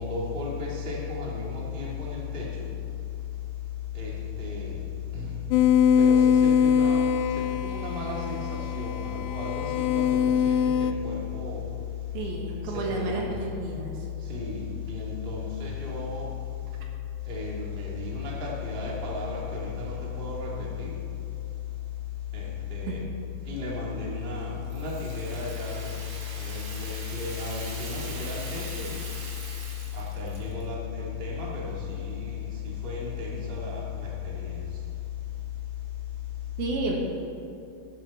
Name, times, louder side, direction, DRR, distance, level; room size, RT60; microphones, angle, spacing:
voice 1, 0.0-2.6 3.9-4.8 5.1-5.4 6.0-7.1 7.3-11.6 12.6-13.2 14.2-16.3 17.3-21.0 22.3-23.0 23.4-25.9 26.4-29.0 29.9-34.6, left 5 dB, 20° right, -4 dB, 1.6 m, -33 dB
sound 1, 5.5-10.9, left 8 dB, 85° left, 2.1 m, -23 dB
voice 2, 12.1-14.0 22.9-23.0 36.6-37.1, right 2 dB, 70° right, 0 dB, 3.2 m, -31 dB
Rattle (instrument), 24.7-30.7, right 3 dB, 45° right, 2.2 m, -42 dB
18.0 x 10.0 x 4.3 m, 2.6 s
omnidirectional pair, 4.6 m